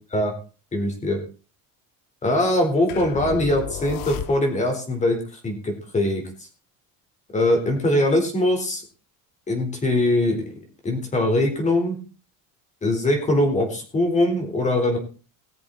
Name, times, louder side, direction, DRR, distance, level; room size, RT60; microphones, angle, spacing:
voice 1, 0.7-1.2 2.2-5.2 5.4-6.2 7.3-8.8 9.5-12.0 12.8-15.0, left 1 dB, 20° left, 4 dB, 4.4 m, -22 dB
sound 1, 2.9-4.8, left 11 dB, 65° left, 1.5 m, -33 dB
20.0 x 7.6 x 4.4 m, 0.36 s
cardioid pair, 160°, 36 cm